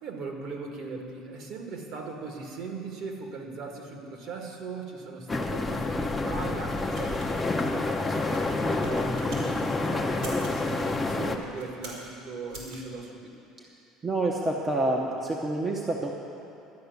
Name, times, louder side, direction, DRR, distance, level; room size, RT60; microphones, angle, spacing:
voice 1, 0.0-7.9 8.3-13.3, right 4 dB, 50° right, 2 dB, 1.6 m, -39 dB
sound 1, 5.3-11.4, left 2 dB, 10° left, 0.7 m, -28 dB
sound 2, 6.4-9.5 10.1-10.6 11.3-12.1 12.5-12.8, right 2 dB, 80° right, 3.3 m, -44 dB
voice 2, 14.0-16.1, right 2 dB, 20° right, -1 dB, 0.8 m, -27 dB
12.5 x 6.0 x 9.4 m, 2.8 s
cardioid pair, 160°, 0 cm